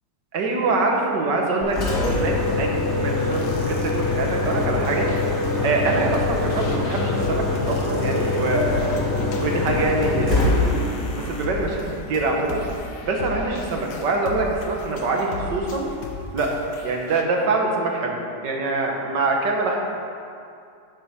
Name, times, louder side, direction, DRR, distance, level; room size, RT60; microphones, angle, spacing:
voice 1, 0.3-1.8 2.1-5.1 5.6-9.0 9.4-10.6 10.9-12.6 13.0-15.9 16.3-16.5 16.8-18.2 18.4-19.8, right 3 dB, 80° right, 1 dB, 1.9 m, -24 dB
Engine, 1.6-12.6, left 2 dB, 55° left, 2.3 m, -24 dB
sound 1, 3.1-17.2, left 4 dB, 85° left, 1.6 m, -36 dB
9.7 x 6.4 x 6.1 m, 2.5 s
omnidirectional pair, 1.8 m